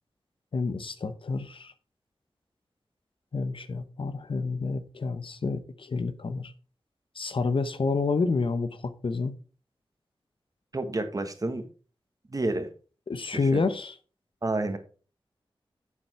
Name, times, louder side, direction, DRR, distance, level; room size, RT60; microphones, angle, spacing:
voice 1, 0.5-1.7 3.3-6.4 7.2-9.3 13.1-14.0, left 4 dB, 65° left, 1.0 m, -29 dB
voice 2, 10.7-11.7 12.3-12.7 13.3-13.6 14.4-14.8, right 2 dB, 40° right, 1.5 m, -29 dB
8.5 x 7.3 x 4.4 m
wide cardioid pair, 85°, 9 cm